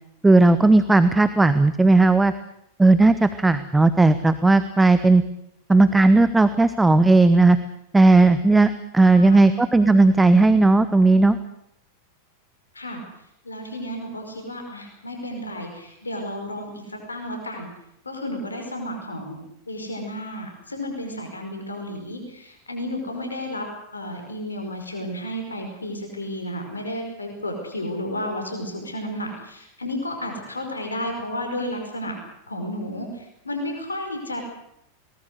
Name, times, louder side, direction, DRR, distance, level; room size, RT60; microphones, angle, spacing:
voice 1, 0.2-2.3 2.8-5.2 5.7-7.6 7.9-11.4, right 2 dB, 10° right, 13 dB, 0.9 m, -16 dB
voice 2, 9.1-9.6 12.7-13.0 13.4-17.7 18.0-19.4 19.7-23.7 23.9-32.2 32.5-34.4, left 1 dB, 80° left, 4 dB, 5.2 m, -32 dB
22.0 x 19.5 x 8.1 m, 0.76 s
figure-of-eight pair, 90°, 0 cm